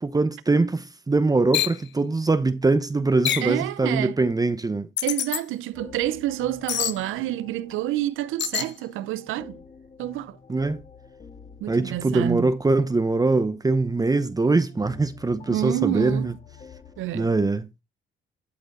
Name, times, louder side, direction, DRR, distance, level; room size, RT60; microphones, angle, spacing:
voice 1, 0.0-4.9 10.5-10.8 11.7-16.3 17.1-17.7, right 3 dB, 20° right, 0.8 m, -22 dB
sound 1, 1.5-1.8 3.3-3.6 5.0-5.4 6.7-7.0 8.4-8.7, left 10 dB, 65° left, 1.0 m, -26 dB
voice 2, 3.4-4.2 5.0-9.6 10.0-10.4 11.6-12.5 15.5-16.3 17.0-17.3, right 14 dB, 90° right, 0.7 m, -28 dB
sound 2, 5.7-17.1, left 5 dB, 35° left, 1.8 m, -48 dB
12.0 x 5.2 x 3.8 m
cardioid pair, 90°, 20 cm